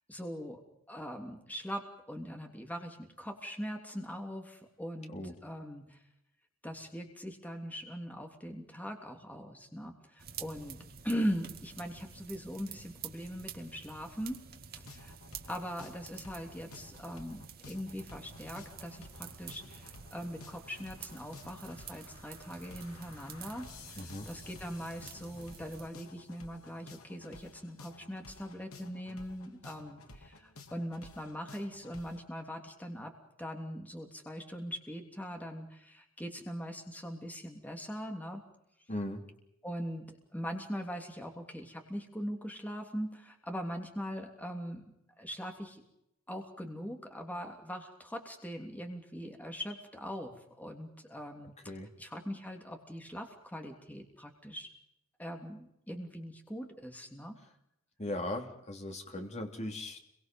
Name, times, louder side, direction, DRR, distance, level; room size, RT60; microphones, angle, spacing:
voice 1, 0.1-0.6 0.9-5.2 5.4-6.0 6.6-10.8 11.0-14.4 14.7-15.1 15.5-33.1 33.4-38.4 39.6-44.8 45.2-45.8 46.3-51.6 52.0-54.7 55.2-57.4, equal, 5° left, 3 dB, 3.1 m, -41 dB
sound 1, 10.2-25.9, right 6 dB, 45° right, 2.0 m, -49 dB
sound 2, 14.9-32.2, left 3 dB, 75° left, 2.9 m, -53 dB
voice 2, 24.0-24.3 38.9-39.3 51.6-51.9 58.0-60.1, left 1 dB, 30° left, 4 dB, 3.2 m, -38 dB
30.0 x 23.5 x 5.4 m, 0.81 s
head